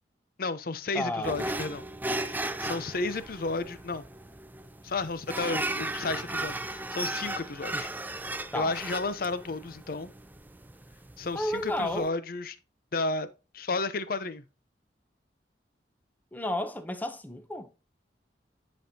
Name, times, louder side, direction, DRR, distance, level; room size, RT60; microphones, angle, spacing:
voice 1, 0.4-1.8 2.2-4.0 4.8-7.9 8.5-10.1 11.2-12.6 12.9-13.3 13.5-14.4, left 3 dB, 55° left, 0.7 m, -32 dB
voice 2, 0.9-1.4 7.7-7.8 8.5-8.8 11.3-12.1 16.3-17.7, left 1 dB, 10° left, 0.8 m, -32 dB
sound 1, 1.2-12.1, right 2 dB, 10° right, 0.4 m, -36 dB
10.5 x 5.3 x 2.8 m
head